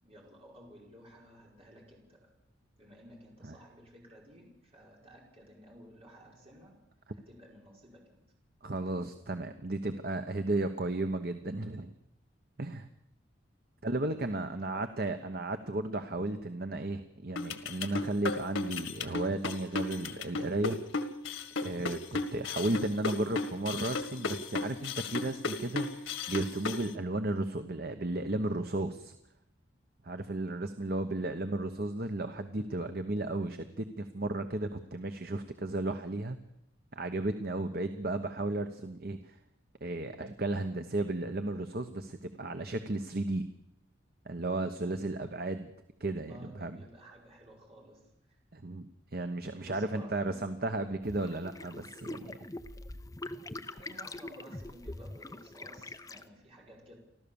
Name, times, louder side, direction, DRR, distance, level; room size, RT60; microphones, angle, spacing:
voice 1, 0.0-2.3 2.8-6.8 7.1-8.2 14.4-14.8 30.9-31.1 46.2-48.1 49.6-50.4 53.7-57.0, equal, 30° right, -2 dB, 4.9 m, -54 dB
voice 2, 8.6-11.9 12.6-12.9 13.8-20.8 21.6-29.1 30.0-36.4 36.9-39.4 39.8-43.5 44.2-45.7 46.0-46.8 48.5-52.4, right 2 dB, 50° right, 8 dB, 1.1 m, -34 dB
sound 1, 17.4-26.9, left 3 dB, 90° left, 1.8 m, -34 dB
sound 2, 51.0-56.2, left 2 dB, 20° left, 0.7 m, -43 dB
30.0 x 12.5 x 7.1 m, 0.79 s
head